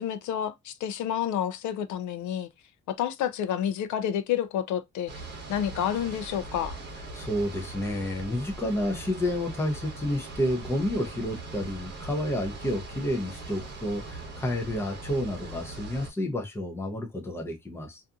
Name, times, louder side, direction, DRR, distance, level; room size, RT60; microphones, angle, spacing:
voice 1, 0.0-2.5 2.9-5.1 5.5-6.8, left 10 dB, 85° left, 0.5 m, -29 dB
sound 1, 5.1-16.1, right 3 dB, 35° right, 0.8 m, -41 dB
voice 2, 7.1-18.0, left 1 dB, 10° left, 0.5 m, -30 dB
2.6 x 2.5 x 2.3 m
cardioid pair, 175°, 29 cm